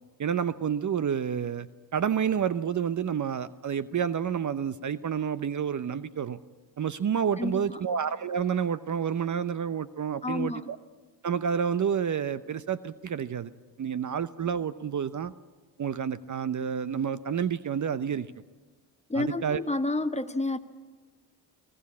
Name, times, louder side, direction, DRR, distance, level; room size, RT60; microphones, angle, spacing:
voice 1, 0.2-1.7 1.9-6.4 6.8-10.8 11.2-13.5 13.8-15.3 15.8-18.3 19.1-19.6, right 7 dB, 40° right, 15 dB, 0.8 m, -29 dB
voice 2, 7.4-7.8 10.2-10.7 19.1-20.6, left 2 dB, 15° left, 9 dB, 1.4 m, -30 dB
23.5 x 17.0 x 8.6 m, 1.4 s
supercardioid pair, 55°, 44 cm